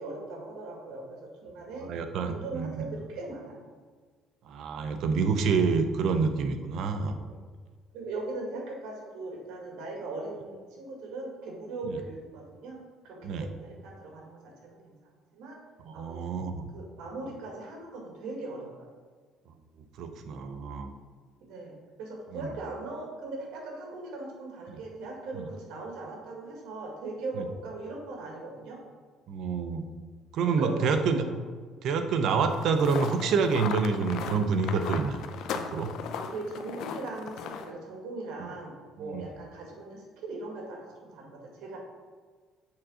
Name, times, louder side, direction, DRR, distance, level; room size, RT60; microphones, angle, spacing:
voice 1, 0.0-1.9 2.2-3.7 7.2-7.4 7.9-15.6 15.9-16.4 16.7-18.8 21.4-28.8 30.4-31.3 36.2-41.8, right 2 dB, 75° right, 0 dB, 2.0 m, -39 dB
voice 2, 1.8-2.7 4.5-7.2 13.2-13.5 15.9-16.6 20.0-20.9 22.3-22.5 25.4-25.5 27.4-27.5 29.3-29.9 30.3-31.2 31.8-35.2 35.5-35.9 39.1-39.2, right 5 dB, 55° right, 8 dB, 0.7 m, -27 dB
sound 1, 32.5-37.7, left 7 dB, 60° left, 0.5 m, -37 dB
7.4 x 3.7 x 6.3 m, 1.5 s
cardioid pair, 155°, 0 cm